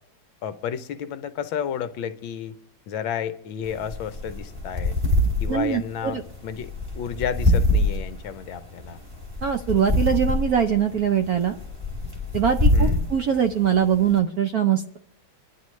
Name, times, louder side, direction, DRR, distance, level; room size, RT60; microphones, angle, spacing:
voice 1, 0.4-2.6 2.9-4.9 5.4-9.0 12.7-13.0, left 8 dB, 75° left, 1.4 m, -32 dB
sound 1, 3.6-14.2, left 1 dB, 15° right, 2.4 m, -25 dB
voice 2, 5.5-6.2 9.4-11.6 12.3-15.0, right 8 dB, 65° right, 0.9 m, -22 dB
27.0 x 10.5 x 3.1 m
omnidirectional pair, 2.2 m